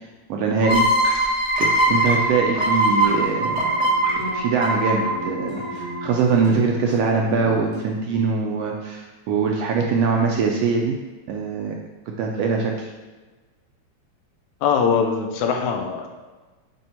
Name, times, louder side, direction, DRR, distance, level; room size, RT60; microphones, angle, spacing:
voice 1, 0.3-0.9 1.1-1.3 1.6-3.9 4.3-10.9 11.3-11.8 12.1-12.9, right 4 dB, 75° right, 0 dB, 1.5 m, -22 dB
sound 1, 0.6-6.1, right 1 dB, 40° right, 1.0 m, -21 dB
sound 2, 2.9-7.8, left 1 dB, 60° left, 2.3 m, -35 dB
voice 2, 14.6-16.1, left 6 dB, 85° left, 4 dB, 2.1 m, -21 dB
9.0 x 3.5 x 4.3 m, 1.3 s
omnidirectional pair, 3.4 m